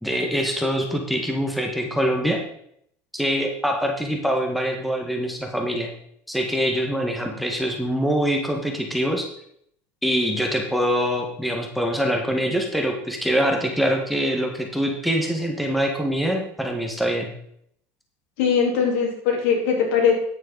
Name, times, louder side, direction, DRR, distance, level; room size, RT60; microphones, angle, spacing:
voice 1, 0.0-2.4 3.1-5.9 6.3-9.3 10.0-17.3, equal, ahead, 2 dB, 1.5 m, -24 dB
voice 2, 18.4-20.1, left 6 dB, 85° left, 0 dB, 3.6 m, -20 dB
9.8 x 9.2 x 4.0 m, 0.69 s
cardioid pair, 140°, 7 cm